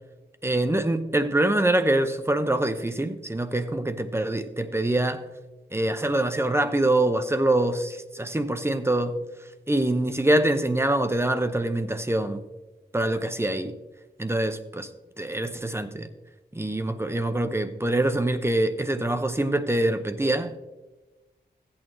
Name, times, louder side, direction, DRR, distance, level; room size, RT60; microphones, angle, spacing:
voice 1, 0.4-5.2 5.7-9.2 9.7-12.5 12.9-13.8 14.2-14.9 15.2-16.1 16.5-20.5, right 1 dB, 15° right, 0.8 m, -24 dB
15.5 x 8.8 x 3.1 m
cardioid pair, 60°, 17 cm